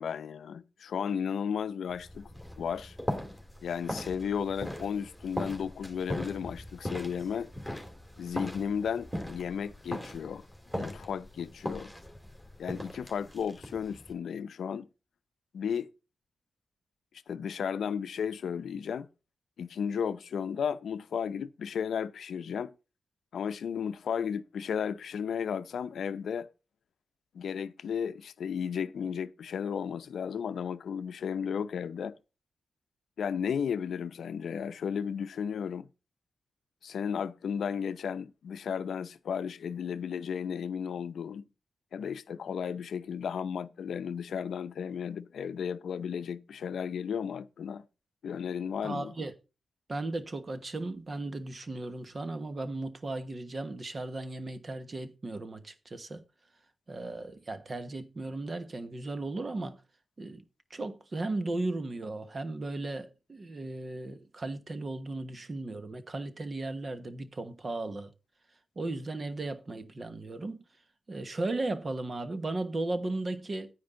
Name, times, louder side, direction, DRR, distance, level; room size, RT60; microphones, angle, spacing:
voice 1, 0.0-2.3 2.6-3.0 3.6-7.5 8.2-10.4 10.7-11.9 12.6-14.9 15.5-15.9 17.3-19.1 19.6-22.7 23.3-26.5 27.3-32.1 33.2-35.9 36.8-41.4 41.9-47.8 48.2-49.1, left 7 dB, 80° left, 0.7 m, -34 dB
sound 1, 1.9-14.1, left 1 dB, 5° right, 2.8 m, -40 dB
voice 2, 48.8-49.3 49.9-56.2 56.9-59.8 60.2-60.4 60.7-68.1 68.7-70.6 71.1-73.7, right 2 dB, 30° right, 1.3 m, -36 dB
9.6 x 9.6 x 3.8 m
wide cardioid pair, 145°, 0 cm